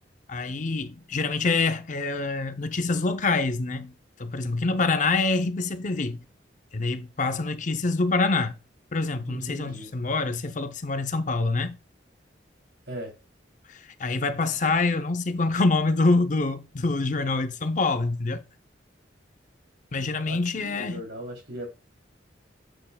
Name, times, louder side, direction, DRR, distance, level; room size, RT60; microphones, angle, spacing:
voice 1, 0.3-3.9 4.2-6.2 6.7-8.6 8.9-11.8 13.7-18.4 19.9-21.0, left 3 dB, 40° left, 0.6 m, -26 dB
voice 2, 9.3-9.9 12.9-13.1 20.3-21.7, equal, 60° right, 2.9 m, -38 dB
7.8 x 6.2 x 2.2 m
head